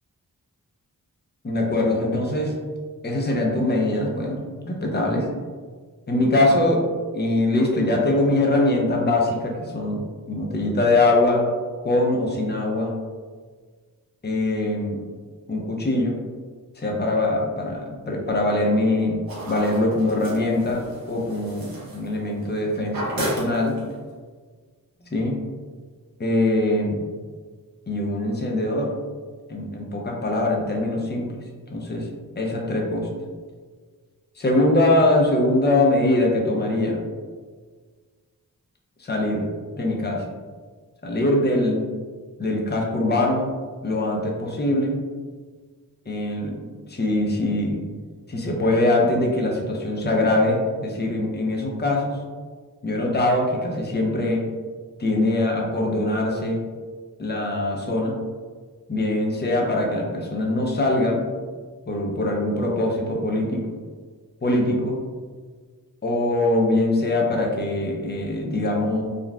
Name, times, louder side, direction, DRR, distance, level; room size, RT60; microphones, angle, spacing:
voice 1, 1.4-2.5 3.0-5.3 6.1-6.9 7.1-10.0 10.3-11.5 11.8-12.9 14.2-15.0 15.5-16.2 16.8-19.2 19.5-23.8 25.1-25.4 26.2-27.0 27.9-28.9 29.5-31.4 31.7-32.1 32.4-33.1 34.4-37.0 39.0-40.2 41.0-41.8 42.4-43.5 43.8-44.9 46.1-46.6 46.9-47.8 48.3-52.2 52.8-54.5 55.0-56.6 57.2-58.2 58.9-61.2 61.9-63.7 64.4-65.0 66.0-69.0, left 2 dB, 30° left, 0 dB, 0.7 m, -22 dB
sound 1, 19.3-22.6 22.8-24.0, right 1 dB, 80° right, 1.0 m, -33 dB
3.8 x 2.2 x 2.2 m, 1.5 s
cardioid pair, 40°, 35 cm